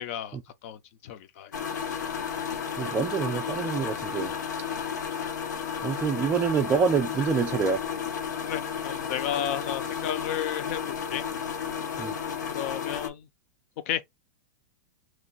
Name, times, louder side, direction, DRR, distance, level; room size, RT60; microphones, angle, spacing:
voice 1, 0.0-1.5 8.5-10.8 11.1-11.2 12.5-13.3 13.9-14.0, left 10 dB, 50° left, 0.6 m, -33 dB
sound 1, 1.5-13.1, left 7 dB, 90° left, 0.9 m, -33 dB
voice 2, 2.8-4.3 5.8-7.8 12.0-12.2, right 6 dB, 15° right, 0.4 m, -26 dB
3.0 x 2.2 x 4.0 m
hypercardioid pair, 145°, 9 cm